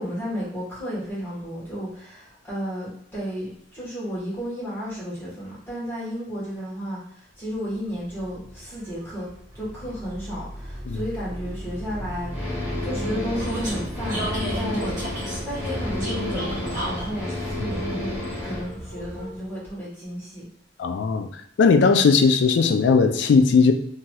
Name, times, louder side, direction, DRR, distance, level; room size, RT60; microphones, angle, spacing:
voice 1, 0.0-9.3 9.5-15.0 15.4-18.1 18.4-20.4, equal, 10° left, -8 dB, 1.2 m, -33 dB
Vehicle, 7.7-19.6, equal, 45° right, 1.1 m, -34 dB
sound 1, 12.3-18.7, left 1 dB, 5° right, 1.3 m, -31 dB
voice 2, 20.8-21.3 21.6-23.7, left 5 dB, 65° left, 8 dB, 0.3 m, -18 dB
3.0 x 2.7 x 2.2 m, 0.69 s
head